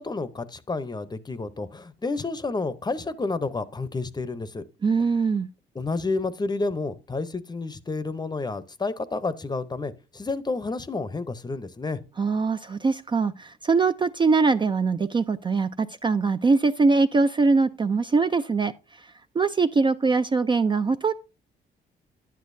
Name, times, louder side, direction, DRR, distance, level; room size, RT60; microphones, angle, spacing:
voice 1, 0.0-4.6 5.7-12.0, left 3 dB, 20° left, 0.7 m, -30 dB
voice 2, 4.8-5.5 12.2-18.7 19.4-21.1, right 4 dB, 25° right, 0.4 m, -22 dB
10.0 x 8.3 x 2.6 m
cardioid pair, 90°, 20 cm